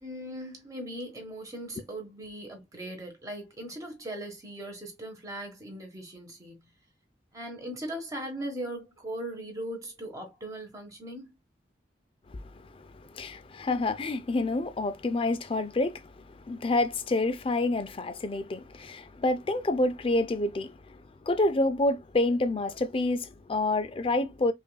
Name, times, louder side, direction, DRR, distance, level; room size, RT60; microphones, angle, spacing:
voice 1, 0.0-6.7 7.3-11.3, right 1 dB, 20° right, 1.1 m, -39 dB
voice 2, 13.1-21.0 21.3-24.5, left 2 dB, 30° left, 0.4 m, -28 dB
5.2 x 2.5 x 2.2 m
head